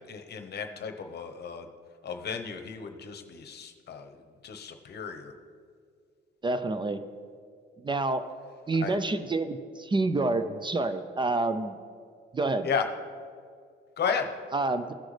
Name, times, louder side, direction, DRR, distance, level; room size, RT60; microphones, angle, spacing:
voice 1, 0.0-1.7 2.0-5.3 8.8-8.9 12.6-12.8 14.0-14.3, left 6 dB, 55° left, 6 dB, 0.9 m, -34 dB
voice 2, 6.4-7.0 7.8-8.3 8.7-11.8 12.3-12.7 14.5-14.9, right 2 dB, 25° right, 10 dB, 0.5 m, -28 dB
16.0 x 6.2 x 3.3 m, 2.2 s
cardioid pair, 90°, 20 cm